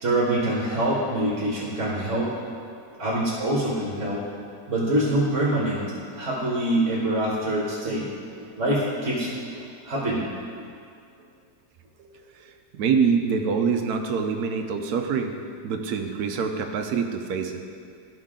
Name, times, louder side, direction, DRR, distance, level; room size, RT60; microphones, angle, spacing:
voice 1, 0.0-2.3 3.0-4.2 4.7-5.8 6.1-8.1 8.4-10.3, right 1 dB, 50° right, -5 dB, 1.5 m, -25 dB
voice 2, 12.4-15.3 15.6-17.6, right 6 dB, 70° right, 5 dB, 1.1 m, -25 dB
13.0 x 5.5 x 3.7 m, 2.3 s
omnidirectional pair, 1.8 m